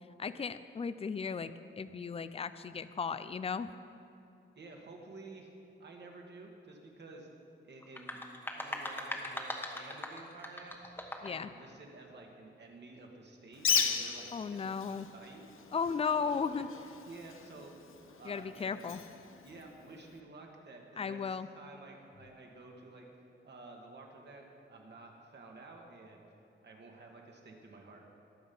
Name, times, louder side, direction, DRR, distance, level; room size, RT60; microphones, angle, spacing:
voice 1, 0.2-3.7 11.2-11.5 14.3-15.1 15.7-16.7 18.2-19.0 21.0-21.5, left 5 dB, 30° left, 13 dB, 0.4 m, -35 dB
voice 2, 4.5-5.5 5.8-7.3 7.6-8.2 8.5-10.8 11.2-14.6 15.1-15.4 16.1-16.6 17.0-17.7 18.0-18.8 19.4-23.1 23.4-26.2 26.6-28.1, right 3 dB, 60° right, 0 dB, 2.0 m, -51 dB
sound 1, 7.8-11.5, left 1 dB, 10° left, 1.2 m, -41 dB
Bird, 13.5-20.2, left 6 dB, 90° left, 0.8 m, -37 dB
22.0 x 7.6 x 5.5 m, 2.8 s
wide cardioid pair, 170°, 20 cm